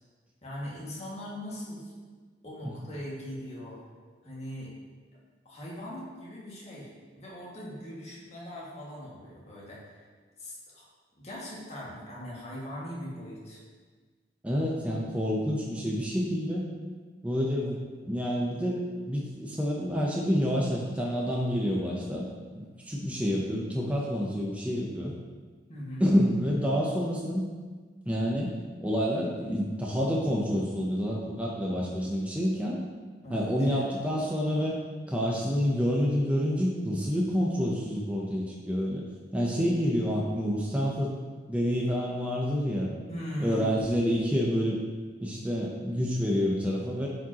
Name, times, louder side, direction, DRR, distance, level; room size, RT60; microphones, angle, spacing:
voice 1, 0.4-1.9 2.4-3.8 4.2-4.7 5.5-10.0 10.4-10.9 11.2-13.6 25.7-26.1 33.2-33.9 43.1-43.7, equal, 40° left, -6 dB, 1.9 m, -40 dB
voice 2, 14.4-16.7 17.2-17.8 18.0-22.3 22.5-25.1 26.0-27.4 28.1-28.5 28.8-32.8 33.3-34.8 35.1-39.0 39.3-41.1 41.5-42.9 43.4-44.8 45.2-47.1, equal, 10° right, -3 dB, 0.7 m, -28 dB
9.3 x 5.1 x 2.9 m, 1.5 s
head